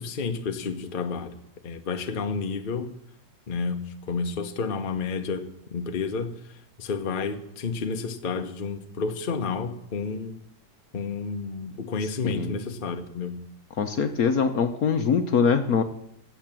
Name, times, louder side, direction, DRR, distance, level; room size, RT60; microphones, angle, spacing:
voice 1, 0.0-1.4 1.6-2.9 3.5-6.4 6.8-10.3 10.9-13.4, left 4 dB, 35° left, 6 dB, 0.9 m, -30 dB
voice 2, 12.2-12.6 13.8-15.8, left 6 dB, 60° left, 7 dB, 1.2 m, -23 dB
15.5 x 7.9 x 7.5 m, 0.75 s
omnidirectional pair, 2.1 m